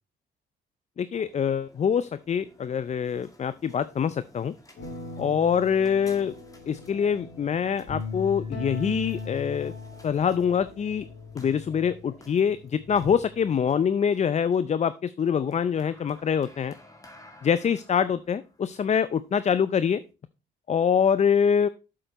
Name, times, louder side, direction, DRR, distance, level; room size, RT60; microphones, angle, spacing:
voice 1, 1.0-4.5 5.2-6.3 6.7-9.7 10.0-11.0 11.3-16.7 17.4-20.0 20.7-21.7, left 7 dB, 35° left, 15 dB, 0.5 m, -25 dB
sound 1, 1.0-20.1, left 1 dB, 15° left, 2.2 m, -54 dB
sound 2, 4.8-13.8, left 3 dB, 65° left, 3.3 m, -39 dB
8.0 x 7.6 x 4.1 m, 0.31 s
cardioid pair, 90°, 20 cm